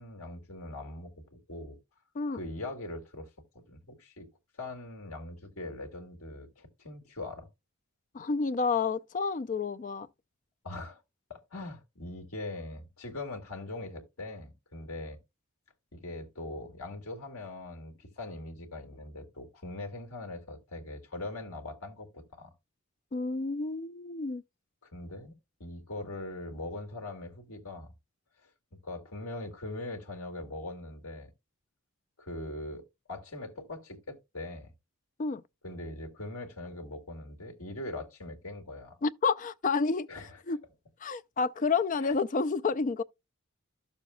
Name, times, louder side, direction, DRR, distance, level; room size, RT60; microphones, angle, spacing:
voice 1, 0.0-1.8 2.3-3.3 3.7-4.3 4.6-7.5 10.6-11.0 11.3-15.2 15.9-22.5 24.9-27.9 28.4-28.5 28.8-31.3 32.2-32.8 33.1-34.7 35.6-39.0 40.1-40.4 42.0-42.1, left 2 dB, 75° left, 2.1 m, -41 dB
voice 2, 8.1-10.1 23.1-24.4 35.2-35.4 39.0-40.1 40.5-40.6 41.0-43.0, left 4 dB, 35° left, 0.4 m, -29 dB
13.0 x 7.0 x 2.3 m
head